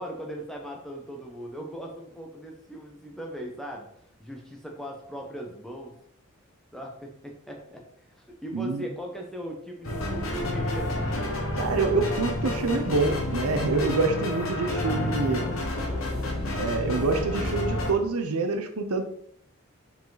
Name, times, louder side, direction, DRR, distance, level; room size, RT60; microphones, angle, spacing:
voice 1, 0.0-3.9 4.2-5.9 6.7-11.0 14.7-16.4, equal, ahead, 0 dB, 1.0 m, -39 dB
voice 2, 8.5-8.9 11.6-15.5 16.6-19.0, right 3 dB, 85° right, 7 dB, 0.8 m, -26 dB
sound 1, 9.8-17.9, left 1 dB, 75° left, 1.3 m, -29 dB
5.0 x 5.0 x 3.9 m, 0.68 s
head